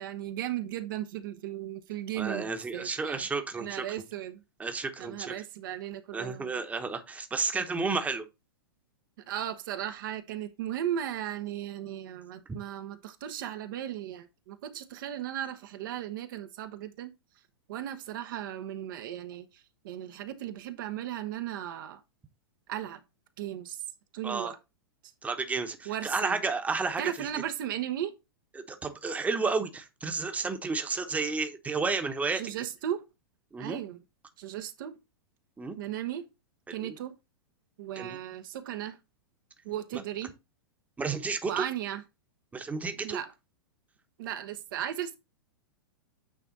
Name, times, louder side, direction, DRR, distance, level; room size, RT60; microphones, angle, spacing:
voice 1, 0.0-3.3 3.5-4.4 5.0-6.5 9.3-17.1 17.7-22.0 22.7-23.0 23.4-23.8 24.1-24.6 25.9-26.4 27.0-28.1 32.3-33.0 33.6-34.0 34.4-35.0 35.8-36.3 36.7-37.2 37.8-39.0 39.6-40.4 41.5-42.0 43.0-43.3 44.2-45.2, right 11 dB, 60° right, 0.9 m, -36 dB
voice 2, 2.1-3.8 4.6-5.3 6.1-8.2 12.5-12.6 24.2-24.5 25.2-27.0 28.5-32.4 33.5-33.8 35.6-35.8 36.8-36.9 38.0-38.2 39.9-40.0 41.0-41.6 42.5-43.2, right 4 dB, 10° right, 1.0 m, -32 dB
8.8 x 3.4 x 4.0 m
hypercardioid pair, 110°, 12 cm